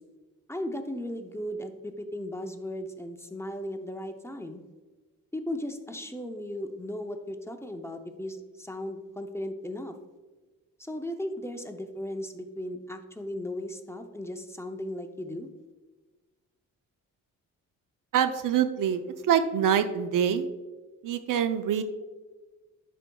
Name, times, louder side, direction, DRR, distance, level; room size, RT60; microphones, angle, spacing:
voice 1, 0.5-4.6 5.3-9.9 10.9-15.5, left 1 dB, 10° left, 5 dB, 0.6 m, -36 dB
voice 2, 18.1-20.5 21.0-21.8, right 9 dB, 70° right, 10 dB, 0.6 m, -25 dB
11.0 x 5.1 x 2.3 m, 1.3 s
cardioid pair, 90°, 34 cm